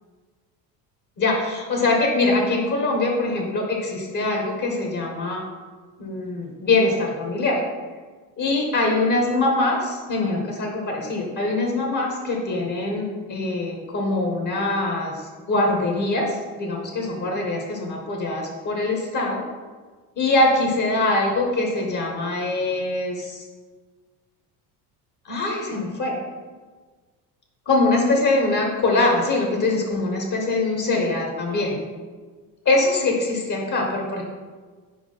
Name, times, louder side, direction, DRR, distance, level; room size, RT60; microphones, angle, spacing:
voice 1, 1.2-5.4 6.0-7.6 8.4-15.2 15.5-19.4 20.2-23.4 25.2-26.2 27.6-31.8 32.6-34.2, left 2 dB, 40° left, 0 dB, 1.7 m, -23 dB
5.0 x 4.6 x 5.7 m, 1.4 s
hypercardioid pair, 80°, 46 cm